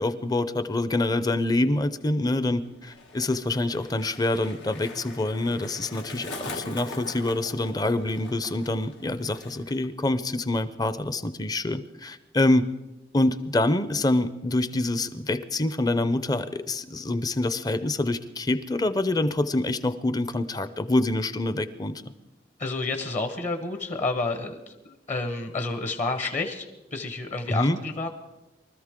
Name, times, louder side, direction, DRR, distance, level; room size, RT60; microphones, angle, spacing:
voice 1, 0.0-12.7 13.1-22.0 27.5-27.8, left 2 dB, 20° left, 13 dB, 0.6 m, -26 dB
Skateboard, 2.5-9.9 10.1-10.6, left 2 dB, 85° left, 1.8 m, -42 dB
voice 2, 22.6-28.1, left 3 dB, 40° left, 7 dB, 1.1 m, -30 dB
24.0 x 13.5 x 3.7 m, 1.0 s
head